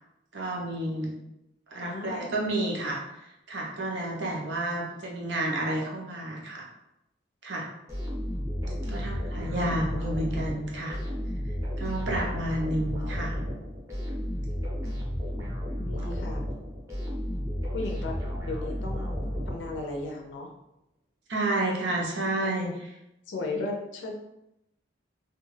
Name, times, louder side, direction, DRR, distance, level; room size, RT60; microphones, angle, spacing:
voice 1, 0.3-1.2 1.7-3.0 3.5-6.6 7.4-7.7 8.9-10.9 11.8-13.3 21.3-22.7, right 1 dB, 70° right, -2 dB, 0.6 m, -30 dB
voice 2, 1.8-2.5 8.6-9.4 15.8-16.4 17.7-20.5 22.4-22.7 23.3-24.1, left 2 dB, 75° left, 1 dB, 0.4 m, -37 dB
sound 1, 7.9-20.1, equal, 15° right, 0.6 m, -33 dB
2.3 x 2.3 x 3.1 m, 0.86 s
head